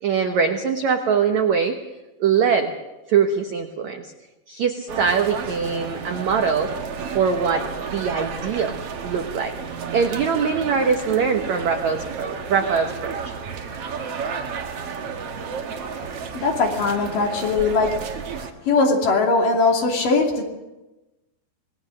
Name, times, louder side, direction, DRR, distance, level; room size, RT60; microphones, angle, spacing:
voice 1, 0.0-1.8 2.2-2.7 3.1-4.1 4.5-6.7 7.1-8.7 9.0-9.5 9.9-13.3, right 6 dB, 80° right, 5 dB, 1.6 m, -22 dB
sound 1, 4.9-18.5, right 5 dB, 55° right, 1.7 m, -32 dB
voice 2, 16.3-17.9 18.7-20.4, left 3 dB, 55° left, 1 dB, 4.0 m, -20 dB
26.0 x 19.5 x 6.4 m, 1.1 s
omnidirectional pair, 5.0 m